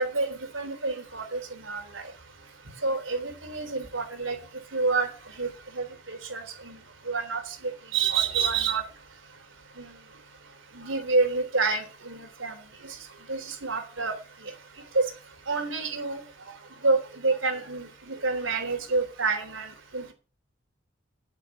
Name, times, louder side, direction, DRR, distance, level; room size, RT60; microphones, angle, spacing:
voice 1, 0.0-2.1 2.8-4.4 4.7-5.1 5.4-5.5 5.7-6.8 7.1-8.8 9.8-9.9 10.7-12.5 13.3-14.1 14.9-15.0 15.5-16.2 16.8-20.1, right 4 dB, 80° right, 6 dB, 3.6 m, -28 dB
8.4 x 8.2 x 8.5 m, 0.35 s
head